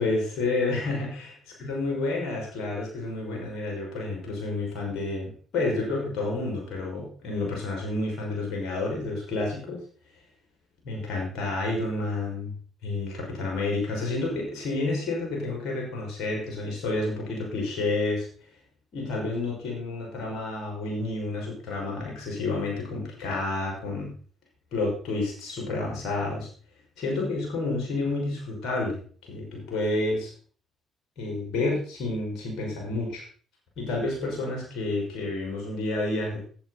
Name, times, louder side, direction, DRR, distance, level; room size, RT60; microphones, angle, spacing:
voice 1, 0.0-1.3 1.6-9.8 10.8-12.5 12.8-18.3 18.9-24.1 24.7-26.5 27.0-29.0 29.3-30.3 31.2-33.2 33.8-36.4, left 2 dB, 65° left, -1 dB, 5.9 m, -30 dB
15.5 x 8.2 x 4.2 m, 0.43 s
hypercardioid pair, 50°, 0 cm